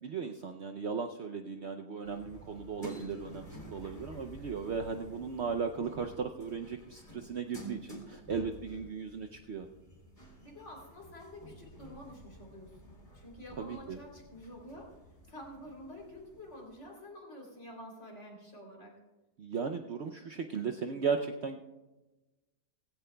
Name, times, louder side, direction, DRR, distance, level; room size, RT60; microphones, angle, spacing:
voice 1, 0.0-9.7 13.6-14.0 19.4-21.6, right 5 dB, 60° right, 5 dB, 0.8 m, -36 dB
sound 1, 2.0-16.8, right 1 dB, 30° left, 2.6 m, -51 dB
voice 2, 10.4-14.9 15.3-19.0, left 1 dB, 50° left, 0 dB, 3.5 m, -49 dB
17.5 x 16.0 x 2.2 m, 1.1 s
omnidirectional pair, 1.6 m